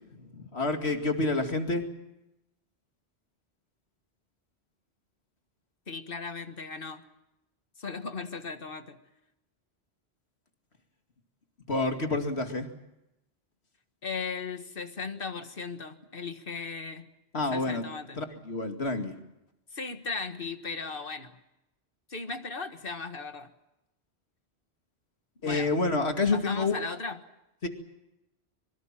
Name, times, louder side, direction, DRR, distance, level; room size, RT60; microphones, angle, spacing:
voice 1, 0.2-1.8 11.7-12.7 17.3-17.8 18.2-19.1 25.4-26.9 27.6-27.7, left 3 dB, 80° left, 5 dB, 2.6 m, -28 dB
voice 2, 5.9-7.0 7.8-9.0 14.0-17.0 17.5-18.2 19.7-21.4 22.1-23.5 25.4-25.7 26.3-27.2, left 4 dB, 55° left, 8 dB, 1.8 m, -37 dB
24.5 x 23.0 x 7.5 m, 0.89 s
omnidirectional pair, 1.1 m